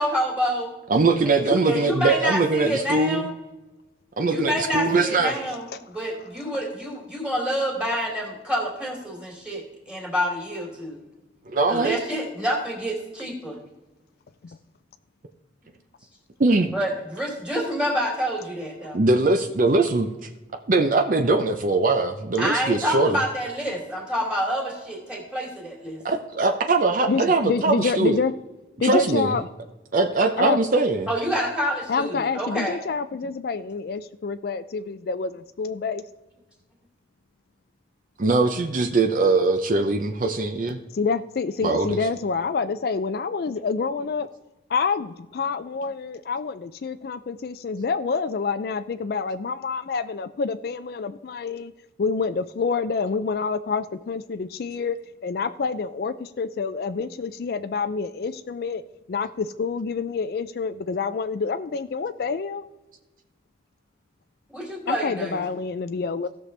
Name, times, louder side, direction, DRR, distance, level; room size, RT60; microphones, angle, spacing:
voice 1, 0.0-0.7 1.2-3.3 4.3-9.6 9.9-11.0 11.7-13.6 16.7-19.0 22.4-26.0 31.1-32.8 64.5-65.4, equal, 5° right, -1 dB, 2.6 m, -27 dB
voice 2, 0.9-3.3 4.2-5.3 11.5-12.0 16.4-16.7 18.9-20.1 20.7-23.2 26.0-28.2 28.8-29.4 29.9-31.1 38.2-40.8 41.6-42.0, right 3 dB, 45° right, 6 dB, 0.6 m, -21 dB
voice 3, 27.1-28.3 28.8-29.5 30.4-30.6 31.9-36.0 40.9-44.3 44.7-45.1 45.3-51.7 52.0-55.0 55.2-58.8 59.1-62.6 64.9-66.3, left 4 dB, 55° left, 12 dB, 0.4 m, -27 dB
16.5 x 6.5 x 3.3 m, 1.1 s
head